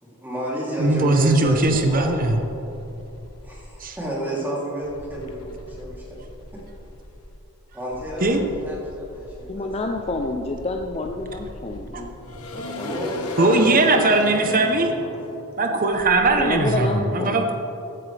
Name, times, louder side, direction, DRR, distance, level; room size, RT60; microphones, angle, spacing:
voice 1, 0.0-2.4 3.4-6.0 6.5-6.6 7.7-9.7 12.7-14.0 14.3-15.1, right 1 dB, 10° right, -6 dB, 3.1 m, -31 dB
voice 2, 0.8-2.4 3.8-4.0 8.2-8.4 11.9-12.0 13.4-14.9 15.6-17.5, right 2 dB, 40° right, 4 dB, 0.9 m, -19 dB
sound 1, 1.6-3.8 4.8-7.4 7.9-16.7, left 1 dB, 90° left, 1.2 m, -38 dB
voice 3, 9.5-12.1 12.4-13.0 16.4-17.4, left 2 dB, 30° left, 3 dB, 0.5 m, -28 dB
15.5 x 10.5 x 3.4 m, 2.9 s
head